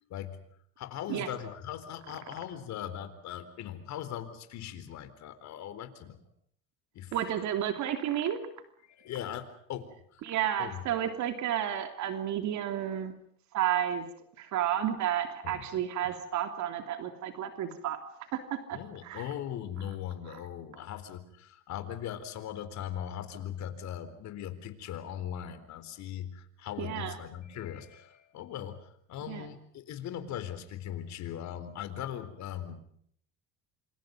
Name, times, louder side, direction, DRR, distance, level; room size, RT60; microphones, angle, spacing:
voice 1, 0.8-6.2 6.9-7.2 8.8-10.2 10.6-10.8 15.4-16.1 18.7-32.8, left 10 dB, 60° left, 10 dB, 4.1 m, -40 dB
voice 2, 7.1-8.4 10.2-13.1 13.5-14.1 14.4-18.0 18.3-19.2 26.8-27.2 29.3-29.5, right 10 dB, 65° right, 7 dB, 3.1 m, -31 dB
27.5 x 27.0 x 5.3 m, 0.65 s
supercardioid pair, 105°, 32 cm